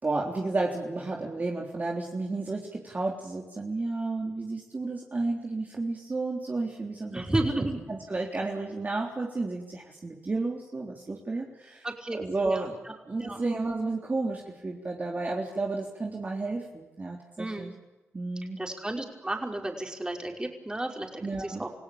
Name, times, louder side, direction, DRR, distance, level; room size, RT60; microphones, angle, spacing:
voice 1, 0.0-7.3 7.9-11.9 12.1-12.7 13.1-17.7 18.1-18.6 21.2-21.6, right 3 dB, 35° right, 0 dB, 3.6 m, -32 dB
voice 2, 7.1-7.8 11.8-12.2 12.4-12.6 13.2-13.4 17.4-17.7 18.6-21.7, right 1 dB, 15° right, 2 dB, 5.6 m, -32 dB
28.5 x 17.0 x 8.8 m, 1.1 s
cardioid pair, 55°, 5 cm